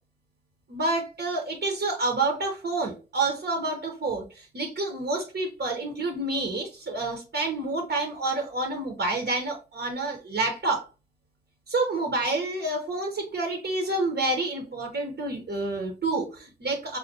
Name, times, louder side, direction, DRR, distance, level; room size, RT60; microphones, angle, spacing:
voice 1, 0.7-10.9 11.7-17.0, right 2 dB, 80° right, 1 dB, 1.0 m, -28 dB
5.6 x 2.2 x 2.8 m, 0.32 s
cardioid pair, 55°, 18 cm